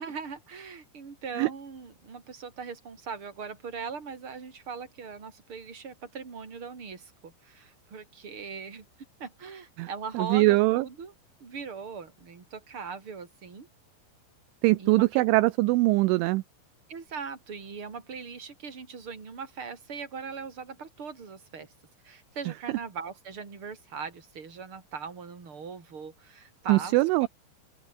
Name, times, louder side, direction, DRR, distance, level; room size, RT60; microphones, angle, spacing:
voice 1, 0.0-8.8 9.2-11.1 11.4-13.7 14.8-15.2 16.9-21.7 22.0-27.3, right 5 dB, 25° right, 4.4 m, -40 dB
voice 2, 10.2-10.8 14.6-16.4 26.7-27.3, right 20 dB, 80° right, 3.0 m, -22 dB
open air
omnidirectional pair, 5.8 m